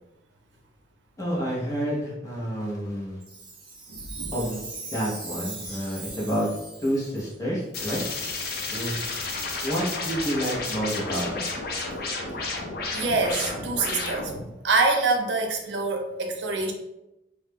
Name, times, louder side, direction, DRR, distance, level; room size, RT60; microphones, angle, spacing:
voice 1, 1.2-3.2 4.3-4.6 4.9-6.5 6.8-8.0 8.7-9.0 9.6-11.4, equal, 20° left, -5 dB, 0.7 m, -29 dB
Chime, 3.2-7.3 7.9-8.0 8.7-8.9 9.5-9.7 10.3-10.4 11.1-11.2 11.9-12.0, right 3 dB, 25° right, 0.6 m, -40 dB
voice 2, 3.9-4.3 12.9-14.3 14.6-16.7, right 3 dB, 80° right, 2 dB, 0.5 m, -25 dB
sound 1, 7.7-14.5, left 3 dB, 60° left, 0.5 m, -32 dB
2.4 x 2.1 x 3.4 m, 0.92 s
head